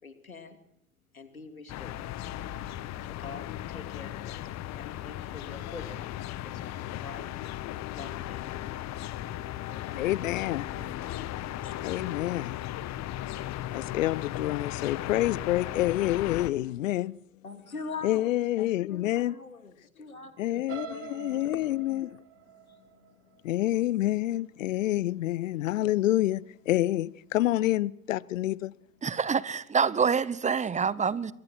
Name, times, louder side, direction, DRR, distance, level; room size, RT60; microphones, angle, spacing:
voice 1, 0.0-0.6 1.1-2.1 3.0-7.3 8.0-8.6 9.7-10.1 10.7-11.3 11.6-11.8 17.4-18.3 18.9-21.6 22.7-22.8, left 4 dB, 90° left, 3.1 m, -45 dB
sound 1, 1.7-16.5, left 13 dB, 40° left, 1.5 m, -36 dB
voice 2, 9.9-10.7 11.8-12.6 13.7-17.2 18.0-19.4 20.4-22.2 23.4-28.7, left 15 dB, 70° left, 0.8 m, -28 dB
sound 2, 20.7-24.6 25.1-25.4 25.8-25.9, right 10 dB, 35° right, 3.3 m, -46 dB
voice 3, 29.0-31.3, right 6 dB, 15° right, 1.0 m, -26 dB
29.0 x 24.0 x 4.5 m
figure-of-eight pair, 80°, 41 cm